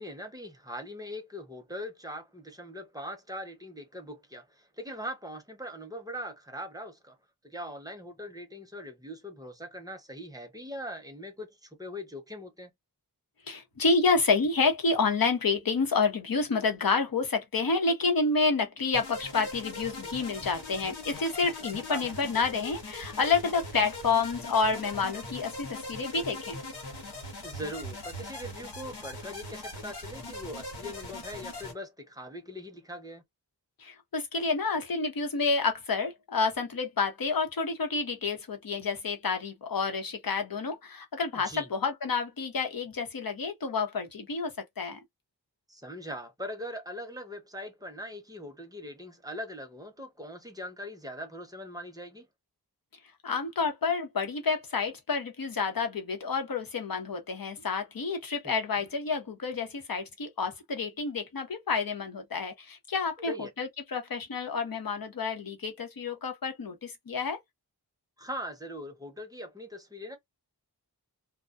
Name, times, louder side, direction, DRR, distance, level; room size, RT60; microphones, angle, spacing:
voice 1, 0.0-7.2 7.4-12.7 21.9-22.0 27.4-33.2 41.4-41.7 45.7-52.3 58.4-58.5 63.3-63.5 68.2-70.2, equal, 10° right, 0.8 m, -41 dB
voice 2, 13.5-26.6 33.8-45.0 53.2-67.4, left 4 dB, 60° left, 0.9 m, -29 dB
sound 1, 18.9-31.7, left 2 dB, 80° left, 1.2 m, -41 dB
2.3 x 2.3 x 2.5 m
wide cardioid pair, 75°, 40 cm